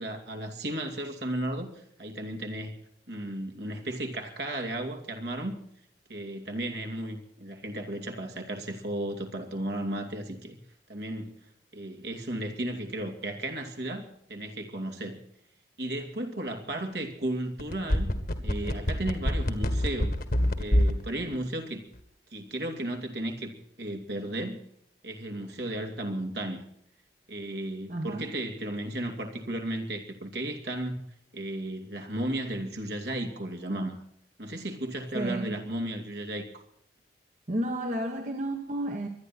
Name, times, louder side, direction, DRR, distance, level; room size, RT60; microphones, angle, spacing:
voice 1, 0.0-2.8 3.1-5.6 6.1-10.6 10.9-11.4 11.7-15.2 15.8-20.1 20.6-21.8 22.3-24.6 25.0-26.6 27.3-31.0 31.3-34.0 34.4-36.6, right 1 dB, 65° right, 2.6 m, -34 dB
sound 1, 17.6-21.0 21.3-21.4, equal, 55° left, 1.7 m, -24 dB
voice 2, 27.9-28.3 35.1-35.6 37.5-39.1, right 1 dB, 45° right, 1.5 m, -31 dB
23.5 x 11.0 x 4.3 m
head